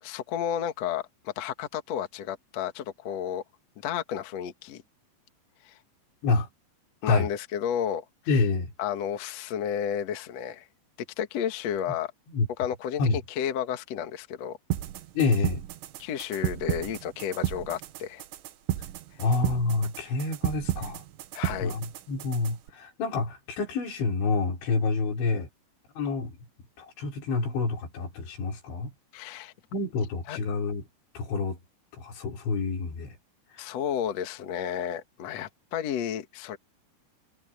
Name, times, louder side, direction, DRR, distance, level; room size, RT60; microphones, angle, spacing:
voice 1, 0.0-3.4 3.8-4.8 5.6-5.8 7.0-8.0 8.3-8.4 8.8-10.7 11.2-12.1 12.6-14.6 16.0-18.2 21.3-21.8 29.1-29.5 30.3-30.4 33.6-36.6, left 9 dB, 60° left, 1.8 m, -32 dB
voice 2, 8.3-8.7 12.3-12.5 13.0-13.2 15.2-15.6 19.2-21.0 21.6-25.5 26.0-26.4 26.8-28.9 29.7-30.8 31.2-31.6 32.0-33.2, left 3 dB, 80° left, 6.8 m, -27 dB
sound 1, 14.7-22.7, right 13 dB, 80° right, 3.5 m, -33 dB
omnidirectional pair, 5.2 m